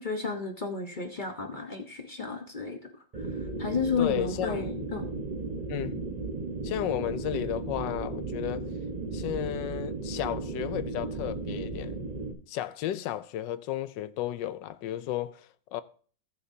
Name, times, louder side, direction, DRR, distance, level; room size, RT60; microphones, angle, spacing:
voice 1, 0.0-2.8 3.1-5.0, left 5 dB, 30° left, 1.0 m, -32 dB
sound 1, 3.1-12.3, right 3 dB, 25° right, 1.0 m, -35 dB
voice 2, 4.0-4.6 5.7-6.0 6.6-8.7 9.1-12.0 12.5-15.8, left 12 dB, 75° left, 1.3 m, -33 dB
20.0 x 7.2 x 2.8 m
omnidirectional pair, 2.1 m